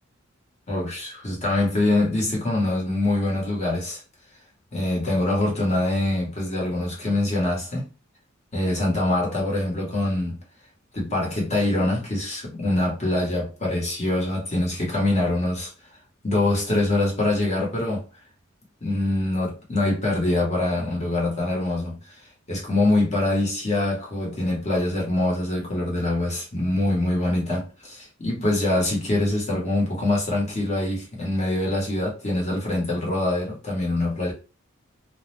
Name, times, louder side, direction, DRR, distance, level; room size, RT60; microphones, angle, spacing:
voice 1, 0.7-4.0 4.7-7.9 8.5-10.4 10.9-15.7 16.2-18.0 18.8-34.3, left 2 dB, 35° left, 1.0 m, -24 dB
2.3 x 2.0 x 3.1 m
head